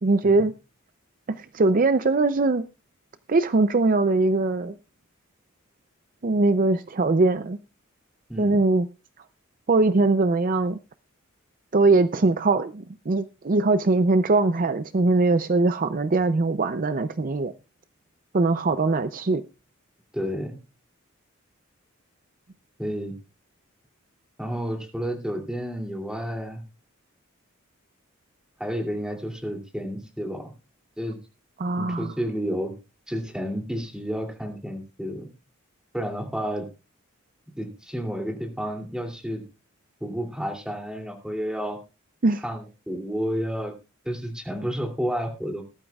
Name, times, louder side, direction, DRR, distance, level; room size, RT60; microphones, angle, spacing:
voice 1, 0.0-0.5 1.3-2.7 3.3-4.7 6.2-7.6 8.4-8.9 9.7-10.8 11.7-17.5 18.3-19.4 31.6-32.1 42.2-42.4, right 3 dB, 40° right, 0.5 m, -21 dB
voice 2, 20.1-20.6 22.8-23.1 24.4-26.6 28.6-30.5 31.0-31.2 31.8-32.7 33.1-35.3 35.9-36.7 37.6-39.4 40.0-41.8 42.4-43.7 44.0-45.6, equal, 5° right, 2.7 m, -31 dB
19.5 x 12.0 x 2.4 m
head